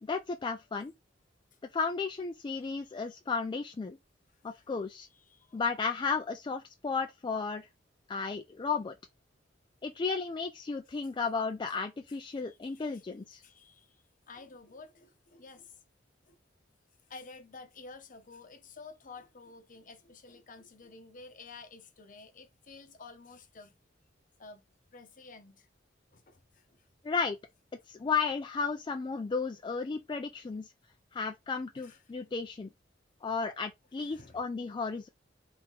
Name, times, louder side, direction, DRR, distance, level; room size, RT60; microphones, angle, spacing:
voice 1, 0.0-0.9 1.7-4.0 4.4-5.1 5.5-7.7 8.1-8.9 9.8-13.4 27.0-27.4 27.9-30.7 31.1-32.7 33.2-35.1, left 5 dB, 25° left, 0.3 m, -34 dB
voice 2, 2.5-2.9 4.6-4.7 5.1-5.5 12.4-13.0 13.4-14.0 14.3-15.7 16.3-16.4 17.1-23.7 24.4-24.6 24.9-25.7 26.1-26.8 31.7-32.0 34.0-34.4, left 4 dB, 45° left, 0.8 m, -51 dB
3.5 x 2.9 x 3.6 m
head